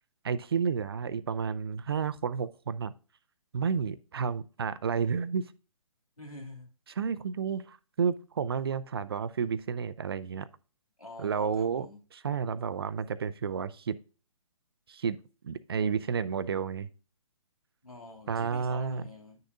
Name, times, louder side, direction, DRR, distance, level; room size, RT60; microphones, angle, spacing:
voice 1, 0.2-2.9 3.5-5.5 7.0-10.5 11.2-14.0 14.9-15.2 15.4-16.9 18.3-19.0, right 6 dB, 45° right, 16 dB, 0.5 m, -31 dB
voice 2, 6.2-6.7 11.0-12.0 17.8-19.4, left 2 dB, 90° left, 0 dB, 2.4 m, -47 dB
9.9 x 6.6 x 2.5 m, 0.35 s
figure-of-eight pair, 130°, 18 cm